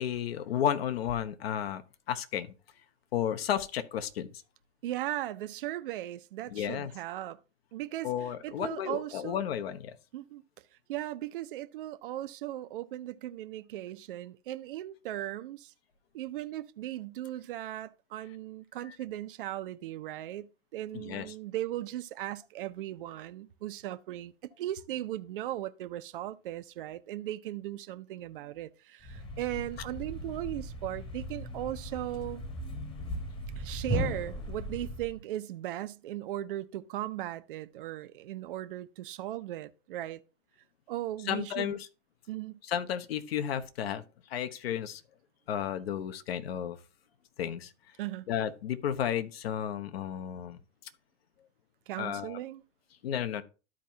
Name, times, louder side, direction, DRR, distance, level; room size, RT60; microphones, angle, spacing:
voice 1, 0.0-1.8 2.1-2.5 3.1-4.3 6.5-6.9 8.0-9.9 20.9-21.3 41.3-41.9 42.7-44.0 44.3-45.0 45.5-46.8 47.4-47.7 48.3-50.6 52.0-52.4 53.0-53.4, left 9 dB, 55° left, 1.1 m, -32 dB
voice 2, 4.8-7.4 7.7-8.1 8.4-9.4 10.1-10.4 10.9-15.7 16.1-24.3 24.6-32.4 33.6-40.2 40.9-41.8 42.3-42.6 48.0-48.2 51.9-52.6, right 14 dB, 45° right, 0.6 m, -37 dB
Thump thud, 29.0-35.2, equal, 15° left, 1.2 m, -37 dB
13.0 x 4.6 x 2.7 m
figure-of-eight pair, 115°, 37 cm